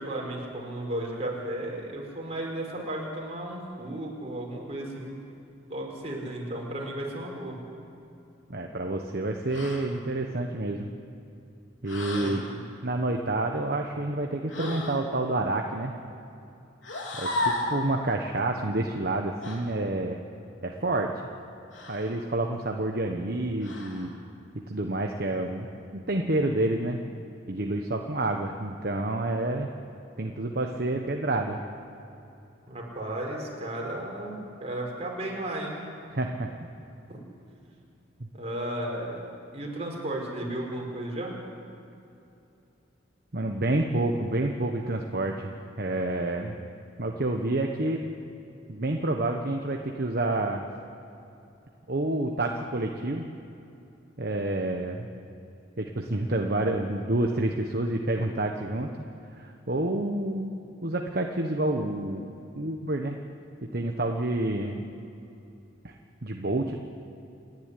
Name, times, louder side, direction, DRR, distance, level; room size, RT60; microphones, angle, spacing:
voice 1, 0.0-5.1 5.7-7.6 12.2-12.7 32.7-35.8 37.1-37.2 38.3-41.4, right 1 dB, 35° right, -2 dB, 5.1 m, -34 dB
voice 2, 8.5-10.9 11.8-12.5 12.8-15.9 17.2-20.2 20.6-21.1 21.9-24.1 24.7-25.7 26.1-27.0 27.5-29.7 30.2-31.6 36.1-36.5 43.3-46.6 47.0-48.0 48.7-50.6 51.9-53.2 54.2-55.1 55.8-58.9 59.4-63.2 63.7-64.8 65.8-65.9 66.2-66.8, right 2 dB, 50° right, 2 dB, 1.2 m, -28 dB
sound 1, 9.5-9.9 11.9-12.4 14.5-15.0 16.8-17.8 19.4-19.6 21.7-22.2 23.6-24.1, left 1 dB, 80° left, 3.9 m, -33 dB
28.5 x 11.0 x 9.9 m, 2.8 s
head